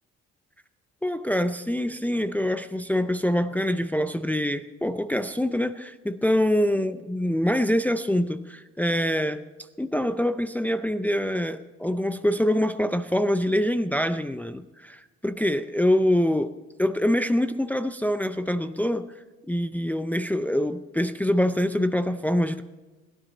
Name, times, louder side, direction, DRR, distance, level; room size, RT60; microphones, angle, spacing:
voice 1, 1.0-9.4 9.8-16.5 16.8-19.2 19.5-22.6, left 1 dB, 5° left, 9 dB, 0.6 m, -25 dB
20.5 x 12.5 x 4.1 m, 1.2 s
cardioid pair, 90°, 30 cm